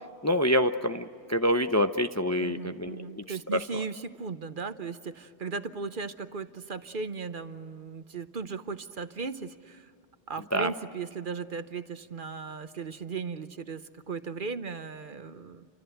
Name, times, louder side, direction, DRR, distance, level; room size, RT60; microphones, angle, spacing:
voice 1, 0.2-3.0 3.5-3.6 10.5-10.7, equal, 20° left, 7 dB, 0.6 m, -26 dB
voice 2, 2.4-9.9 10.3-15.7, right 4 dB, 50° right, 11 dB, 1.0 m, -37 dB
29.0 x 25.5 x 7.9 m, 2.3 s
omnidirectional pair, 1.2 m